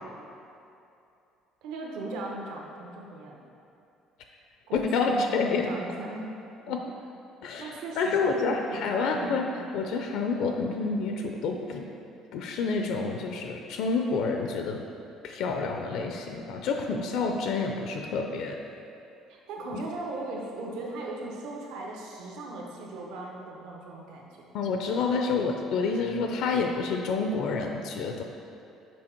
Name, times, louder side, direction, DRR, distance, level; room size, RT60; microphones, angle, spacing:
voice 1, 1.6-3.4 4.7-6.3 6.7-6.8 7.6-9.7 19.3-24.5, right 2 dB, 75° right, -1 dB, 0.9 m, -38 dB
voice 2, 4.7-5.7 6.7-6.8 7.4-11.9 12.3-14.8 15.2-18.6 19.7-19.8 24.5-28.2, left 4 dB, 60° left, 3 dB, 0.4 m, -28 dB
6.1 x 4.4 x 4.4 m, 2.7 s
cardioid pair, 175°, 0 cm